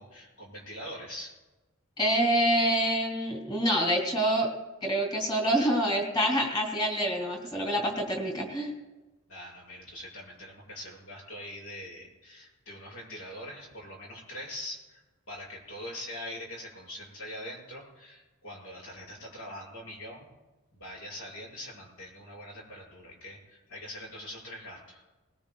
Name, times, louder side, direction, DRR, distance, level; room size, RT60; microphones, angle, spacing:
voice 1, 0.0-1.3 9.3-20.3 20.7-25.0, left 1 dB, 90° left, -3 dB, 6.2 m, -43 dB
voice 2, 2.0-4.5 4.8-8.7, equal, 20° left, 1 dB, 2.5 m, -26 dB
21.5 x 19.5 x 2.3 m, 1.1 s
head